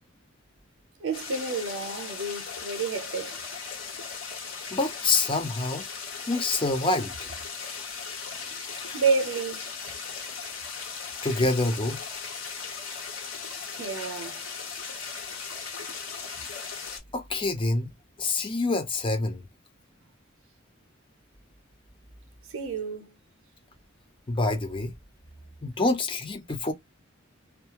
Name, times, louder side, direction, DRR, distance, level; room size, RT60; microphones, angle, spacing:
voice 1, 1.0-3.4 8.9-9.7 13.7-14.4 22.5-23.2, right 4 dB, 85° right, 0.6 m, -29 dB
sound 1, 1.1-17.0, left 5 dB, 85° left, 1.1 m, -38 dB
voice 2, 4.7-5.8 6.3-7.3 8.7-9.0 11.2-12.0 17.1-17.9 18.2-19.4 24.3-24.9 25.6-26.7, left 2 dB, 25° left, 0.6 m, -26 dB
2.3 x 2.3 x 2.9 m
head